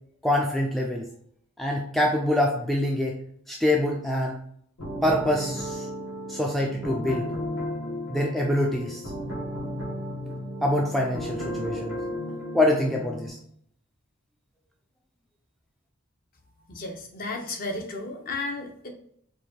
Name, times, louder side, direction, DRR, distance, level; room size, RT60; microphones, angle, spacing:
voice 1, 0.2-1.1 1.6-3.2 3.5-4.4 5.0-5.9 6.3-7.3 8.1-9.0 10.6-12.0 12.5-13.4, left 1 dB, ahead, -1 dB, 0.3 m, -25 dB
sound 1, 4.8-13.3, equal, 70° left, 1.5 m, -34 dB
voice 2, 16.7-18.9, left 2 dB, 40° left, 3 dB, 0.7 m, -33 dB
4.7 x 2.6 x 2.7 m, 0.65 s
head